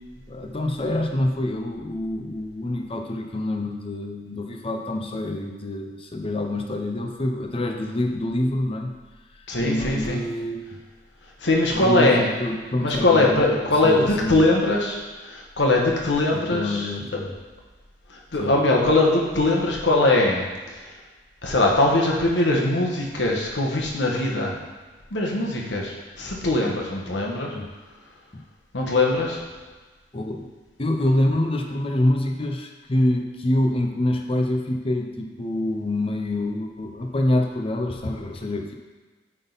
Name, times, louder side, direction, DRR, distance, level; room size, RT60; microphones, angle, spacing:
voice 1, 0.3-8.9 9.6-10.6 11.7-14.5 16.3-17.4 18.4-18.5 27.5-27.7 30.1-30.5 30.8-38.7, left 1 dB, 30° left, 3 dB, 0.7 m, -26 dB
voice 2, 9.5-10.2 11.4-12.3 12.8-16.9 18.1-20.5 21.4-24.5 25.1-27.5 28.7-29.4, left 2 dB, 90° left, -1 dB, 1.3 m, -21 dB
9.0 x 3.8 x 4.0 m, 1.3 s
head